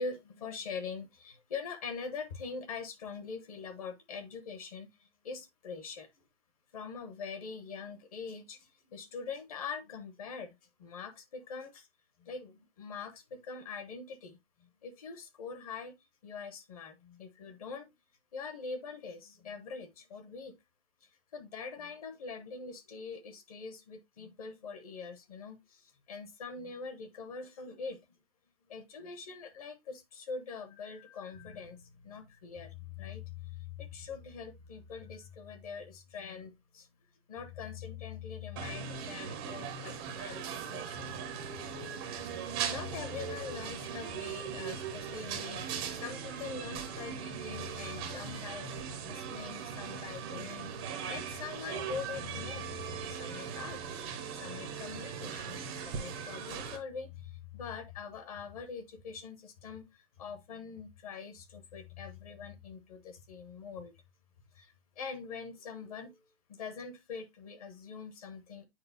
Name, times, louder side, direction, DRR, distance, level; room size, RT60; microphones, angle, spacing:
voice 1, 0.0-6.1 6.7-11.9 12.2-14.4 14.8-16.0 16.2-17.9 18.3-20.5 21.3-28.0 28.7-36.9 37.3-41.2 42.3-48.7 49.0-50.7 51.1-53.8 54.3-63.9 64.5-66.2 66.5-68.7, left 5 dB, 35° left, 1.0 m, -43 dB
sound 1, 38.6-56.8, right 7 dB, 10° right, 0.5 m, -39 dB
8.7 x 4.8 x 2.6 m
hypercardioid pair, 165°, 33 cm